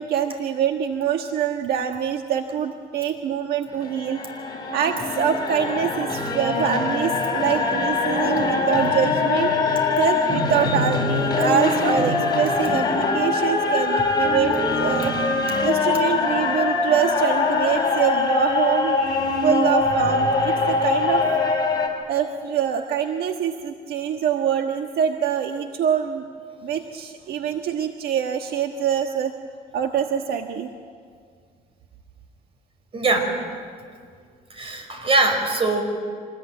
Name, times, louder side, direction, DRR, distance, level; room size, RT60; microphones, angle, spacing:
voice 1, 0.0-4.2 4.7-9.5 10.0-15.1 15.6-19.0 19.4-21.2 22.1-26.3 26.6-29.3 29.7-30.7, right 8 dB, 70° right, 4 dB, 1.5 m, -24 dB
sound 1, 3.7-21.9, left 3 dB, 25° left, 5.7 m, -23 dB
voice 2, 32.9-33.4 34.5-35.8, right 2 dB, 35° right, 5 dB, 5.5 m, -22 dB
26.0 x 20.5 x 9.2 m, 2.1 s
cardioid pair, 110°, 17 cm